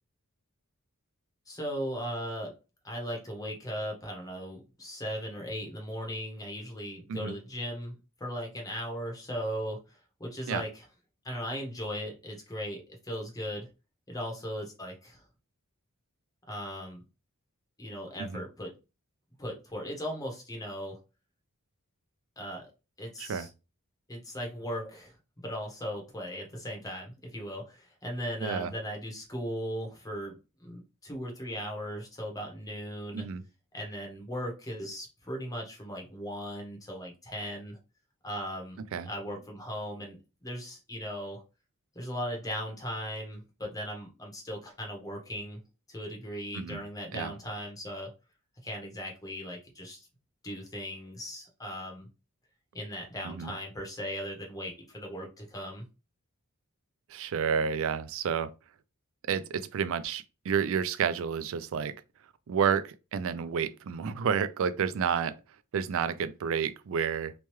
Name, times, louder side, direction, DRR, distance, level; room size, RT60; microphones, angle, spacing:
voice 1, 1.5-2.5 2.8-7.9 8.2-10.9 11.2-13.7 14.1-15.2 16.5-17.0 17.8-18.7 19.4-21.0 22.4-22.7 23.0-23.5 24.1-25.1 25.4-33.3 33.7-37.8 38.2-41.4 41.9-45.6 45.9-48.1 48.6-50.1 50.4-52.1 52.7-55.8, equal, 15° left, 0.9 m, -38 dB
voice 2, 57.1-58.5 59.3-62.0 62.5-65.3 65.7-67.3, right 7 dB, 60° right, 0.3 m, -30 dB
3.1 x 2.2 x 2.9 m
head